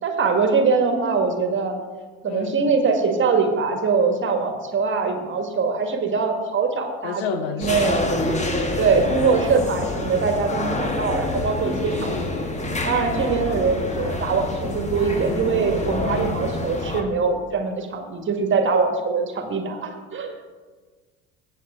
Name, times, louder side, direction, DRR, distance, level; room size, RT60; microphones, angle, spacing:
voice 1, 0.0-1.7 2.2-7.2 7.6-7.9 8.8-12.4 12.8-20.5, right 5 dB, 30° right, 5 dB, 1.7 m, -22 dB
voice 2, 2.2-2.7 7.0-8.5 8.8-9.0 12.0-12.3 16.0-16.4, left 7 dB, 60° left, 10 dB, 1.0 m, -32 dB
sound 1, 7.6-17.0, left 2 dB, 20° left, 1.4 m, -27 dB
16.5 x 6.7 x 3.6 m, 1.4 s
figure-of-eight pair, 65°, 37 cm